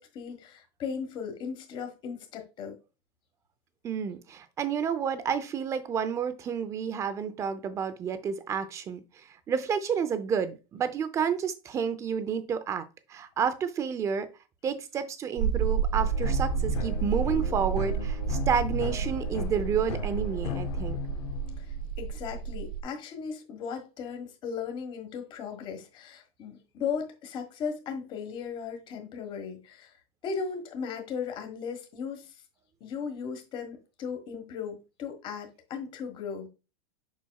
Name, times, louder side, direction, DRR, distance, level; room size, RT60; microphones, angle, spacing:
voice 1, 0.0-2.8 21.6-30.0 30.2-32.4 32.8-36.5, left 6 dB, 25° left, 1.4 m, -37 dB
voice 2, 3.8-14.3 14.6-21.0, right 7 dB, 15° right, 0.5 m, -30 dB
sound 1, 15.4-22.8, right 7 dB, 80° right, 1.3 m, -30 dB
sound 2, 15.9-21.9, left 9 dB, 90° left, 0.8 m, -36 dB
7.1 x 6.0 x 2.3 m
supercardioid pair, 170°, 19 cm